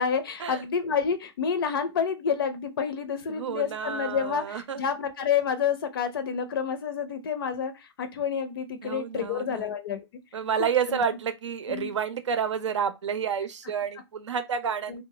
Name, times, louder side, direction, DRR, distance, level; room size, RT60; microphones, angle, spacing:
voice 1, 0.0-10.1 10.6-11.0 11.7-11.9 14.9-15.0, left 7 dB, 50° left, 0.5 m, -29 dB
voice 2, 3.3-4.8 8.8-9.7 10.3-15.0, right 7 dB, 80° right, 0.6 m, -30 dB
2.4 x 2.1 x 3.6 m
hypercardioid pair, 155°, 15 cm